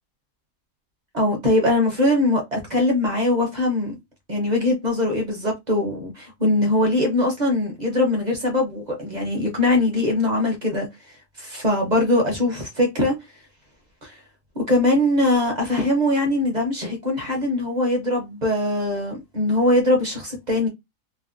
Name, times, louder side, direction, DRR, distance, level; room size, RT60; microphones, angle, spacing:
voice 1, 1.1-4.0 4.3-13.1 14.0-14.1 14.5-20.7, left 1 dB, 40° right, 0.6 m, -22 dB
3.3 x 2.0 x 2.5 m
omnidirectional pair, 1.8 m